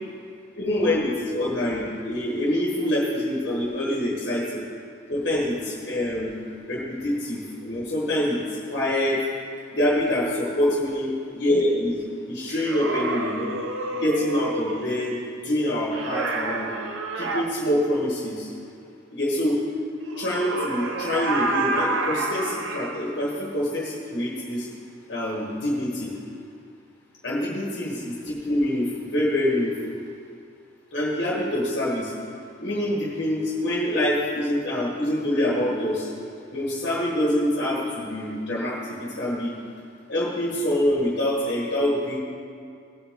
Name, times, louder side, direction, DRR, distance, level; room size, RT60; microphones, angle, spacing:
voice 1, 0.6-4.6 5.1-6.3 6.7-9.2 9.7-13.5 13.9-16.7 17.1-18.5 19.1-19.6 20.2-24.7 25.1-26.1 27.2-29.8 30.9-32.1 32.6-36.1 36.5-39.5 40.1-42.2, left 1 dB, 55° left, -5 dB, 1.4 m, -25 dB
sound 1, 12.5-14.9 15.9-17.5 20.0-22.9, right 3 dB, 80° right, 0.8 m, -29 dB
17.0 x 6.0 x 3.8 m, 2.3 s
head